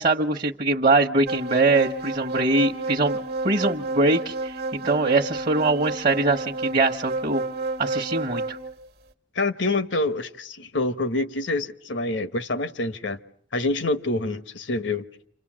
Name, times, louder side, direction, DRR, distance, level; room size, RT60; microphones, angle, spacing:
voice 1, 0.0-3.2 3.4-7.4 7.8-8.6, right 3 dB, 40° right, 1.1 m, -22 dB
sound 1, 1.3-8.7, right 2 dB, 60° right, 1.3 m, -31 dB
voice 2, 9.3-13.2 13.5-15.0, left 2 dB, 75° left, 1.3 m, -26 dB
29.0 x 26.0 x 7.5 m
head